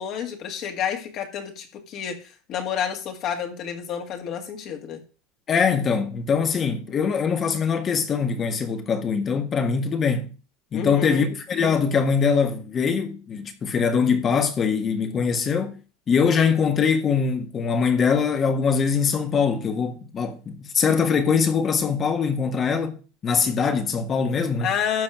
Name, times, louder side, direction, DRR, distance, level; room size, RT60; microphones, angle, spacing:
voice 1, 0.0-2.2 2.5-5.0 10.7-11.3 24.6-25.0, left 8 dB, 45° left, 2.0 m, -29 dB
voice 2, 5.5-10.3 10.7-15.7 16.1-24.7, left 6 dB, 25° left, 1.5 m, -22 dB
12.5 x 4.3 x 7.4 m
supercardioid pair, 150°, 0 cm